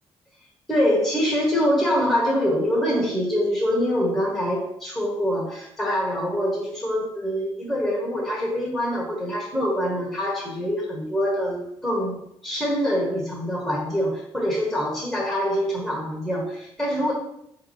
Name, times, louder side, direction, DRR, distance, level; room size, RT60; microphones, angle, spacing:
voice 1, 0.7-17.1, equal, 10° left, -4 dB, 1.2 m, -24 dB
3.5 x 2.9 x 4.6 m, 0.72 s
cardioid pair, 120°, 10 cm